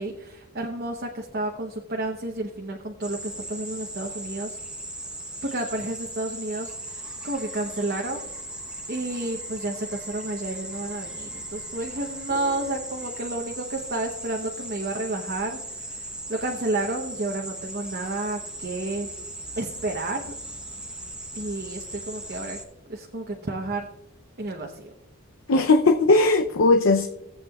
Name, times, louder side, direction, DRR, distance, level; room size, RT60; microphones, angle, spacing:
voice 1, 0.0-4.6 5.4-8.3 8.9-15.6 15.9-19.1 19.6-20.3 21.3-22.6 22.9-23.9 24.4-24.9, right 2 dB, 45° right, 0.9 m, -31 dB
sound 1, 3.0-22.6, right 1 dB, 5° right, 0.9 m, -38 dB
sound 2, 7.7-10.1 12.3-13.3, left 5 dB, 85° left, 3.1 m, -48 dB
voice 2, 25.5-27.1, left 2 dB, 70° left, 0.6 m, -18 dB
19.0 x 8.1 x 2.3 m
head